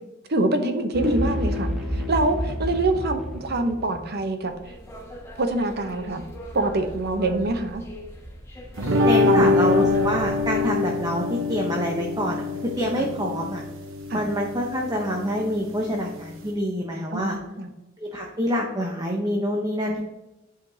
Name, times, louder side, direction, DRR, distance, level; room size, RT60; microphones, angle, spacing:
voice 1, 0.3-4.5 5.4-6.2 6.5-7.8 9.2-9.6 14.1-14.2 17.1-17.7, right 2 dB, 55° right, 7 dB, 0.8 m, -25 dB
sound 1, 0.9-4.3, left 1 dB, ahead, 1.1 m, -29 dB
sound 2, 4.4-10.6, equal, 15° left, 1.6 m, -40 dB
sound 3, 8.8-16.5, left 3 dB, 85° right, 0.9 m, -25 dB
voice 2, 9.0-12.4 12.8-13.6 14.1-17.4 18.0-20.0, equal, 20° right, 0 dB, 0.8 m, -26 dB
11.0 x 5.1 x 2.7 m, 1.0 s
head